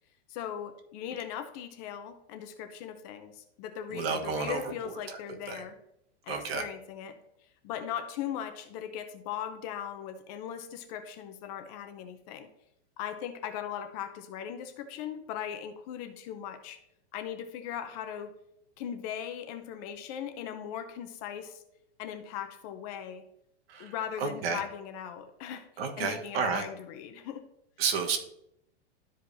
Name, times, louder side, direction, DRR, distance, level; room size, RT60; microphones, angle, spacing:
voice 1, 0.3-5.8 6.2-7.2 7.6-12.5 13.0-16.8 17.1-18.3 18.8-21.6 22.0-23.2 23.8-27.4, left 9 dB, 35° left, 8 dB, 0.7 m, -39 dB
voice 2, 3.9-4.6 5.5-5.6 6.3-6.6 23.7-23.9 24.2-24.6 25.8-26.6 27.8-28.2, right 5 dB, 60° right, 5 dB, 1.4 m, -30 dB
12.5 x 5.0 x 2.7 m, 0.79 s
supercardioid pair, 155°, 35 cm